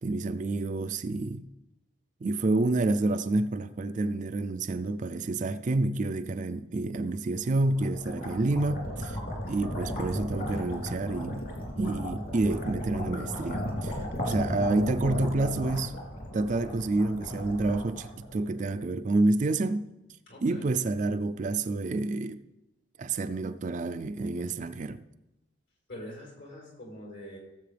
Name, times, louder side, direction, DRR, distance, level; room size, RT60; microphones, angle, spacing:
voice 1, 0.0-1.4 2.2-9.2 9.5-11.5 11.8-13.9 14.2-16.0 16.3-19.9 20.4-22.4 23.0-25.0, right 2 dB, 40° right, 0.4 m, -28 dB
sound 1, 7.5-18.6, equal, 50° left, 2.9 m, -35 dB
voice 2, 20.3-20.7 25.9-27.4, left 1 dB, 75° left, 4.2 m, -44 dB
17.0 x 7.5 x 3.4 m
head